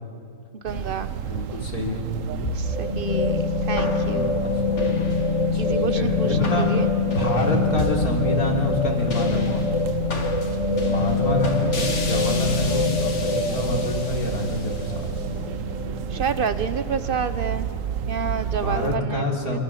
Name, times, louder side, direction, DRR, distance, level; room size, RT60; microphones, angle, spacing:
voice 1, 0.6-1.1 2.5-4.4 5.6-6.9 11.7-11.9 12.7-13.0 16.1-17.7 18.1-19.6, right 5 dB, 40° right, 12 dB, 1.0 m, -29 dB
sound 1, 0.7-19.0, right 9 dB, 65° right, 1.1 m, -31 dB
voice 2, 1.2-2.1 4.0-4.5 5.5-6.7 7.1-9.8 10.8-15.1 18.6-19.6, left 2 dB, 85° left, 0 dB, 4.0 m, -27 dB
sound 2, 2.4-16.9, left 4 dB, 55° left, 2.0 m, -25 dB
26.0 x 22.5 x 7.4 m, 2.4 s
omnidirectional pair, 1.5 m